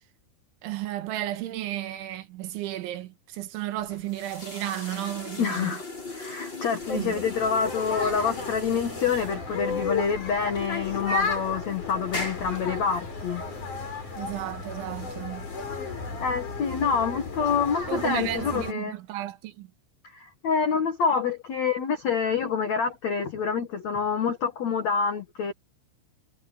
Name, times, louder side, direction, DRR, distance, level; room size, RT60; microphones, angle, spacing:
voice 1, 0.6-5.8 6.9-7.2 14.2-15.5 17.9-19.7, right 14 dB, 80° right, 3.7 m, -33 dB
sound 1, 3.8-16.2, left 2 dB, 20° left, 8.5 m, -40 dB
voice 2, 5.4-5.8 6.1-13.4 15.9-18.9 20.1-25.5, left 6 dB, 70° left, 1.6 m, -27 dB
sound 2, 6.8-18.7, left 4 dB, 40° left, 8.0 m, -34 dB
omnidirectional pair, 5.6 m